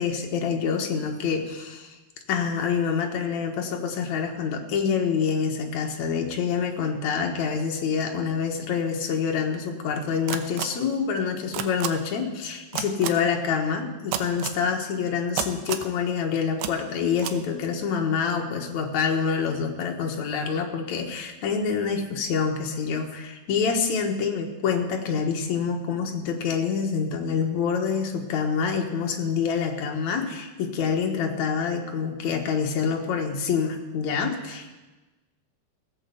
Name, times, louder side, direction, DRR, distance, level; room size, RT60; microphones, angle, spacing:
voice 1, 0.0-1.9 2.3-34.7, left 6 dB, 60° left, 2 dB, 2.2 m, -26 dB
sound 1, 10.3-10.7 11.5-11.9 12.7-13.1 14.1-14.6 15.4-15.9 16.6-16.7 17.2-17.3, right 11 dB, 85° right, 2.9 m, -29 dB
16.5 x 8.7 x 7.0 m, 1.2 s
omnidirectional pair, 4.6 m